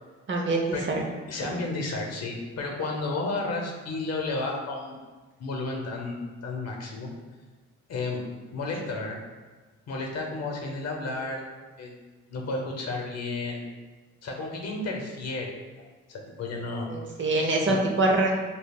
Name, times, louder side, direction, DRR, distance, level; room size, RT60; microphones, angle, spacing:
voice 1, 0.3-1.1 1.4-1.6 16.9-18.3, right 2 dB, 40° right, 0 dB, 0.7 m, -25 dB
voice 2, 1.3-5.0 5.4-7.1 7.9-8.2 8.5-9.2 9.9-11.4 11.8-12.0 12.3-13.6 14.2-16.9 17.7-17.8, left 3 dB, 55° left, 1 dB, 0.8 m, -32 dB
5.4 x 2.2 x 2.3 m, 1.3 s
cardioid pair, 90°, 30 cm